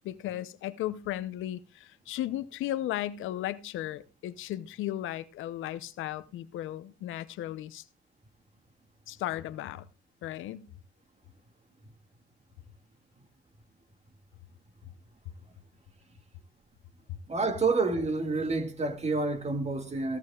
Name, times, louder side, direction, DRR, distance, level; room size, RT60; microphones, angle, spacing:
voice 1, 0.0-7.8 9.1-9.9 10.2-10.7, left 13 dB, 85° left, 0.7 m, -35 dB
voice 2, 17.3-20.2, right 3 dB, 35° right, 2.1 m, -28 dB
16.0 x 14.0 x 2.4 m
cardioid pair, 90°, 20 cm